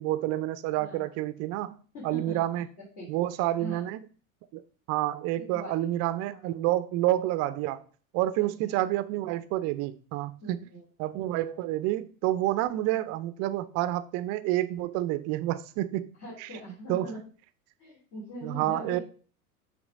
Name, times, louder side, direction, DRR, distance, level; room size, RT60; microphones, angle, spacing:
voice 1, 0.0-1.7 2.0-2.7 3.1-4.0 4.5-4.6 4.9-7.8 8.1-10.6 11.0-16.1 16.4-16.5 16.9-17.1 18.4-19.0, right 15 dB, 35° right, 0.5 m, -29 dB
voice 2, 0.8-1.1 1.9-2.4 3.0-3.9 5.4-5.9 6.3-6.4 8.3-8.7 10.4-10.8 16.2-17.2 17.8-19.0, equal, 50° left, 3.3 m, -42 dB
7.7 x 3.3 x 5.2 m
figure-of-eight pair, 80°, 43 cm